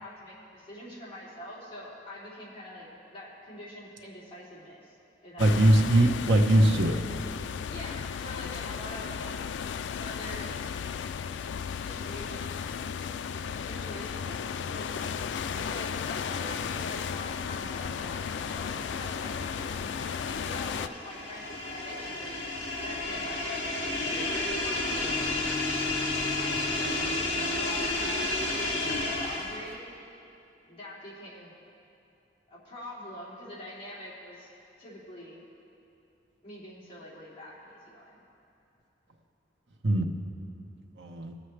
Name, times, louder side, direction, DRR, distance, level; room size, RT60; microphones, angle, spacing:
voice 1, 0.0-5.0 5.2-5.6 7.7-9.4 10.0-10.6 11.6-12.8 13.3-15.2 15.5-19.9 20.2-22.3 22.8-23.7 24.0-25.2 26.2-28.5 28.8-29.8 30.7-31.5 32.5-34.5 34.8-35.4 36.4-38.2, left 1 dB, 30° left, -8 dB, 3.0 m, -44 dB
sound 1, 5.4-20.9, left 7 dB, 90° left, 0.3 m, -35 dB
voice 2, 5.4-7.0 39.8-40.1 41.0-41.3, right 1 dB, 85° right, 3 dB, 1.0 m, -21 dB
sound 2, 18.2-29.7, left 2 dB, 70° left, 2.1 m, -32 dB
22.0 x 7.5 x 3.3 m, 2.7 s
head